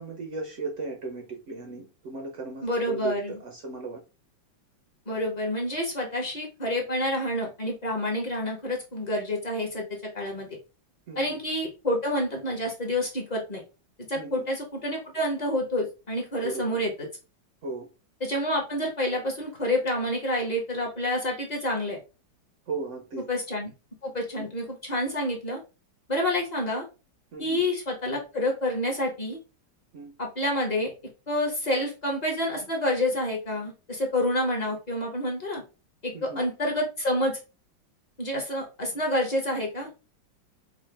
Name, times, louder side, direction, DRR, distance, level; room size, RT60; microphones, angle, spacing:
voice 1, 0.0-4.0 11.1-11.4 14.1-14.5 16.4-16.7 17.6-17.9 22.7-23.3 24.4-24.5 27.3-27.6 29.9-30.1 36.1-36.4, right 3 dB, 75° right, 0.6 m, -36 dB
voice 2, 2.6-3.4 5.1-10.5 11.2-13.6 14.1-16.9 18.2-22.0 23.3-23.7 24.0-25.6 26.1-26.8 27.4-29.4 30.2-30.9 31.3-35.6 36.0-37.4 38.2-39.9, left 1 dB, 35° left, 0.6 m, -28 dB
4.8 x 2.2 x 3.2 m
omnidirectional pair, 2.2 m